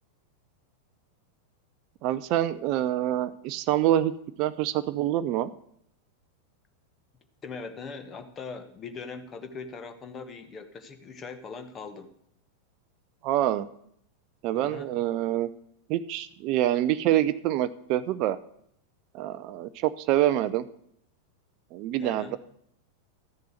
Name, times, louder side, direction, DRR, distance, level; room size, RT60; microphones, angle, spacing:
voice 1, 2.0-4.1 4.4-5.5 13.2-13.7 14.4-15.5 15.9-18.4 19.1-20.6 21.7-22.4, right 13 dB, 40° right, 13 dB, 0.5 m, -26 dB
voice 2, 7.4-12.1 14.5-14.9 22.0-22.4, left 4 dB, 25° left, 8 dB, 1.2 m, -40 dB
13.0 x 6.8 x 6.5 m, 0.71 s
figure-of-eight pair, 90°, 0 cm